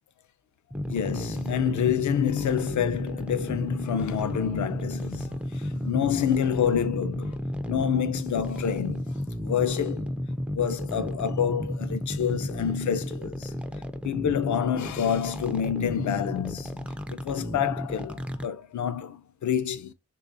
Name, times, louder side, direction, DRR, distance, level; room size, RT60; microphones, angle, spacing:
sound 1, 0.7-18.5, equal, 5° right, 0.3 m, -33 dB
voice 1, 0.9-7.4 7.7-10.1 10.5-13.5 14.0-19.9, left 9 dB, 65° left, 0.4 m, -28 dB
3.2 x 2.4 x 3.9 m
wide cardioid pair, 160°, 31 cm